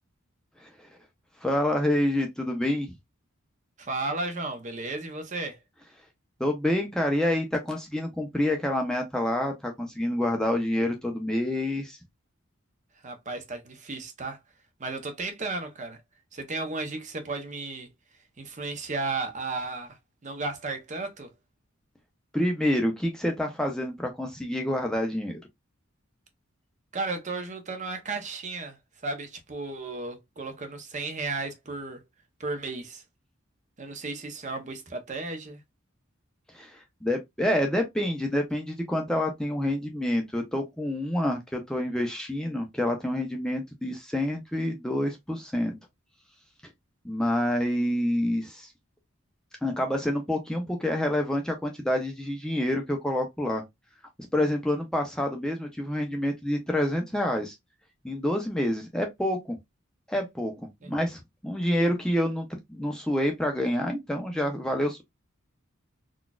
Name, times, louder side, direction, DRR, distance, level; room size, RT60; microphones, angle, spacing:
voice 1, 1.4-2.9 6.4-12.0 22.3-25.4 36.5-45.8 47.0-48.7 49.6-53.6 54.3-57.6 58.0-59.6 60.1-60.5 60.8-65.0, left 1 dB, 5° left, 0.5 m, -27 dB
voice 2, 3.8-5.6 13.0-14.4 14.8-16.0 16.3-17.9 18.4-21.3 26.9-28.8 29.0-32.0 32.4-33.0 33.8-35.6 60.8-60.9, right 3 dB, 35° right, 0.7 m, -34 dB
3.9 x 2.3 x 2.3 m
head